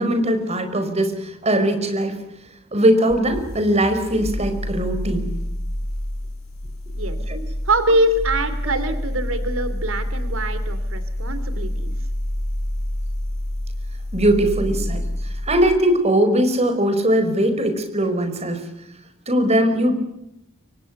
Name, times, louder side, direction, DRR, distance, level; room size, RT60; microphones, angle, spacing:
voice 1, 0.0-2.2 2.7-5.3 7.3-7.4 14.1-15.0 15.4-18.6 19.3-19.9, right 1 dB, 30° right, 7 dB, 5.1 m, -20 dB
sound 1, 3.1-15.8, left 1 dB, 85° left, 7.6 m, -28 dB
voice 2, 7.6-11.9, right 1 dB, 80° right, 11 dB, 2.9 m, -23 dB
29.0 x 24.5 x 6.6 m, 0.84 s
head